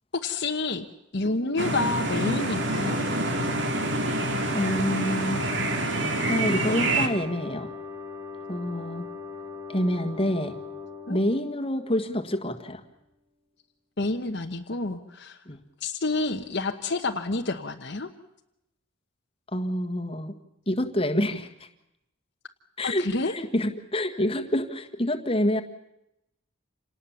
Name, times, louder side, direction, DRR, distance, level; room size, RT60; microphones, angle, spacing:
voice 1, 0.1-0.9 1.1-3.0 11.1-11.2 14.0-15.4 15.8-18.1 22.8-23.3, left 3 dB, 55° left, 4 dB, 1.1 m, -29 dB
sound 1, 1.3-12.7, left 4 dB, 10° right, 2.3 m, -40 dB
sound 2, 1.6-7.1, right 2 dB, 55° right, 2.5 m, -27 dB
voice 2, 4.5-5.4 6.3-7.7 8.5-9.0 9.7-10.6 11.1-12.8 15.5-15.6 19.5-20.3 20.7-21.5 22.8-25.6, left 1 dB, 25° left, 5 dB, 1.6 m, -27 dB
27.5 x 19.0 x 7.1 m, 0.85 s
head